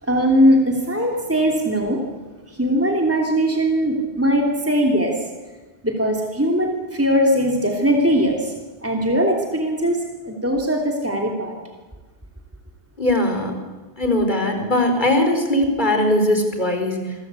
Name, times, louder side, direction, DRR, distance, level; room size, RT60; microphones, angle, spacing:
voice 1, 0.0-2.0 2.5-5.1 5.8-8.5 8.8-11.5, equal, 15° right, 1 dB, 3.0 m, -20 dB
voice 2, 13.0-13.6 14.0-17.1, left 1 dB, 50° left, 4 dB, 4.8 m, -20 dB
28.0 x 22.0 x 8.3 m, 1.3 s
omnidirectional pair, 1.0 m